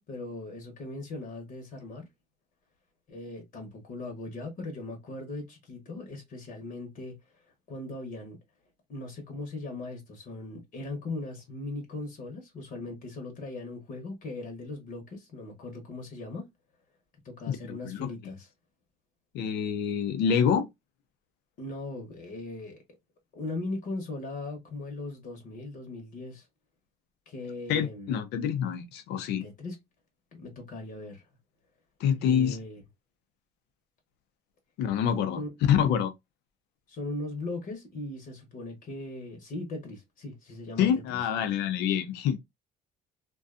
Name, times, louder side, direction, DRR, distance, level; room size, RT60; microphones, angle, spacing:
voice 1, 0.0-2.1 3.1-7.2 7.7-8.4 8.9-16.4 17.2-18.5 21.6-22.8 23.3-26.5 27.3-28.1 29.4-29.8 30.3-31.2 32.2-32.8 35.3-35.5 36.9-41.2, left 2 dB, 55° left, 1.0 m, -39 dB
voice 2, 17.5-18.1 19.3-20.7 27.7-29.4 32.0-32.6 34.8-35.4 35.7-36.1 40.8-42.4, left 8 dB, 85° left, 0.6 m, -26 dB
2.5 x 2.3 x 2.3 m
cardioid pair, 110°, 17 cm